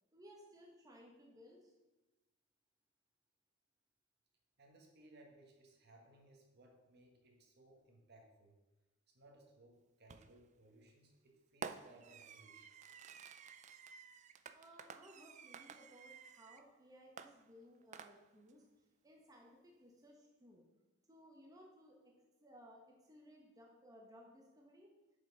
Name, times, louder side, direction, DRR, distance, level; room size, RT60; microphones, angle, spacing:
voice 1, 0.1-1.7 14.5-18.6 19.0-20.6 21.1-22.1 22.4-24.9, equal, 20° right, -1 dB, 1.1 m, -60 dB
voice 2, 4.6-8.6 9.1-12.7, right 1 dB, 55° right, 2 dB, 1.5 m, -64 dB
Fireworks, 10.1-10.5 11.6-16.7 17.2-18.5, right 6 dB, 35° right, 0.4 m, -52 dB
7.4 x 5.5 x 5.6 m, 1.1 s
head